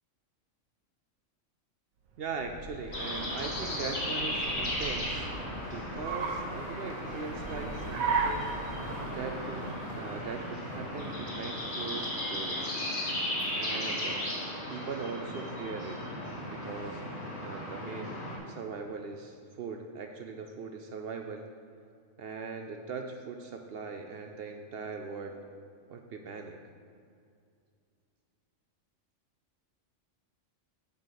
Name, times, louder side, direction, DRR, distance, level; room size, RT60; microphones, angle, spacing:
Car, 2.1-11.6, right 4 dB, 90° right, 1.3 m, -38 dB
voice 1, 2.2-5.3 5.6-8.5 9.1-9.7 9.9-12.7 13.6-14.3 14.7-16.0 16.5-17.0 17.4-21.5 22.2-25.4 25.9-26.6, right 5 dB, 60° right, 4 dB, 0.6 m, -40 dB
sound 1, 2.9-18.4, left 1 dB, 55° left, 1.7 m, -36 dB
8.8 x 4.0 x 6.5 m, 2.3 s
omnidirectional pair, 1.4 m